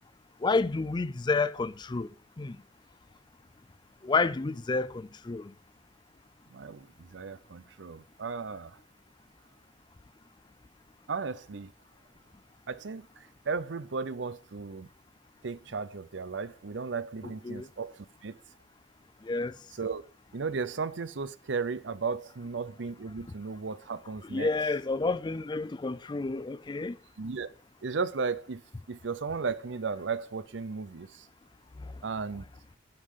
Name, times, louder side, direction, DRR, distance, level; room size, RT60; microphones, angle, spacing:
voice 1, 0.4-2.6 4.0-5.5 17.4-17.7 19.2-19.6 24.2-27.0 31.8-32.0, left 3 dB, 25° left, 0.4 m, -30 dB
voice 2, 6.5-8.8 11.1-11.7 12.7-14.9 15.4-18.4 19.8-20.0 20.3-24.5 27.2-27.5 27.8-28.6 28.9-31.3 32.0-32.4, right 4 dB, 90° right, 0.7 m, -35 dB
11.5 x 5.7 x 4.9 m
head